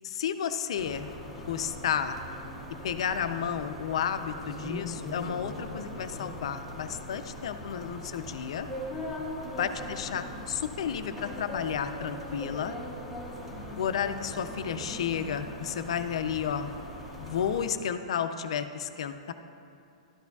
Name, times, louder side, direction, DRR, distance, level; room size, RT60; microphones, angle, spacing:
voice 1, 0.0-1.1 1.4-2.2 2.8-8.7 9.6-12.7 13.7-16.7 17.2-19.3, left 8 dB, 55° left, 9 dB, 0.5 m, -32 dB
sound 1, 0.8-17.7, left 1 dB, ahead, 0.8 m, -40 dB
12.5 x 10.5 x 2.3 m, 2.6 s
hypercardioid pair, 175°, 4 cm